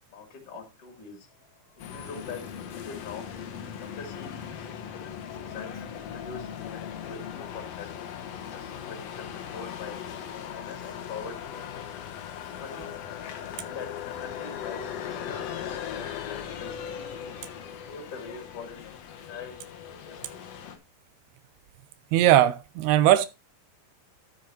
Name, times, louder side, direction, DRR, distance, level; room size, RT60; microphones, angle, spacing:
voice 1, 0.1-1.3 1.9-3.2 3.8-7.9 8.5-10.0 10.5-11.9 12.4-12.9 13.5-14.8 15.1-16.1 16.4-17.1 17.6-18.9 19.3-19.6 20.0-20.4, left 5 dB, 45° left, 2.6 m, -43 dB
sound 1, 1.4-16.4, left 12 dB, 80° left, 1.8 m, -44 dB
sound 2, 1.8-20.8, left 8 dB, 65° left, 1.7 m, -39 dB
voice 2, 22.1-23.3, right 12 dB, 90° right, 2.7 m, -19 dB
11.5 x 8.4 x 2.8 m
omnidirectional pair, 4.4 m